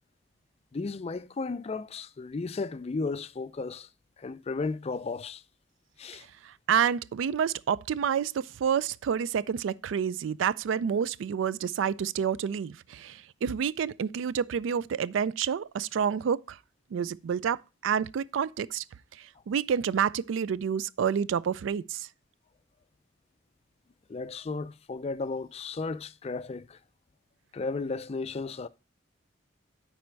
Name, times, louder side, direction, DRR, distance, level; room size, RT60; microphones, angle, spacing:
voice 1, 0.7-3.9 4.2-5.4 6.0-6.3 24.1-26.8 27.5-28.7, left 3 dB, 35° left, 0.4 m, -34 dB
voice 2, 6.4-16.6 16.9-18.8 19.2-22.1, right 7 dB, 85° right, 0.3 m, -29 dB
9.5 x 4.2 x 4.5 m
head